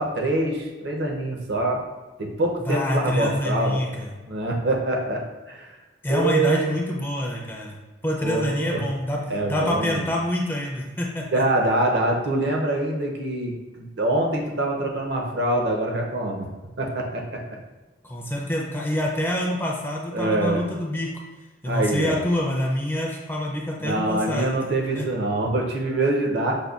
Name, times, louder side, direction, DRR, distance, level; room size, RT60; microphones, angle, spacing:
voice 1, 0.0-1.8 2.2-3.8 4.3-5.7 6.1-6.7 8.2-8.8 9.3-10.0 11.3-16.5 16.8-17.4 20.1-20.6 21.7-22.2 23.8-26.6, right 2 dB, 65° right, 0 dB, 0.6 m, -25 dB
voice 2, 2.6-4.1 6.0-7.7 8.0-9.2 9.5-11.4 18.0-21.1 21.6-24.6 25.0-25.1, left 1 dB, 10° left, -2 dB, 0.4 m, -26 dB
5.1 x 2.2 x 2.3 m, 1.2 s
head